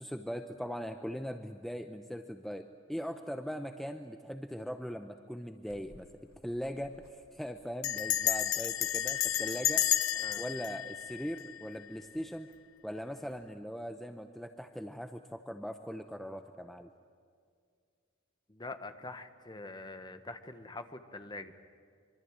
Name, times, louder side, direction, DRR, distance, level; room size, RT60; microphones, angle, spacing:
voice 1, 0.0-6.1 6.4-6.9 7.3-9.8 10.4-12.5 12.8-16.9, equal, ahead, 6 dB, 0.8 m, -40 dB
Bell, 5.7-6.1 6.3-6.4 6.7-7.0 7.8-11.9, left 12 dB, 90° left, 0.9 m, -32 dB
voice 2, 10.1-10.4 18.5-21.6, left 2 dB, 20° left, 9 dB, 1.4 m, -44 dB
25.5 x 24.5 x 9.0 m, 2.2 s
head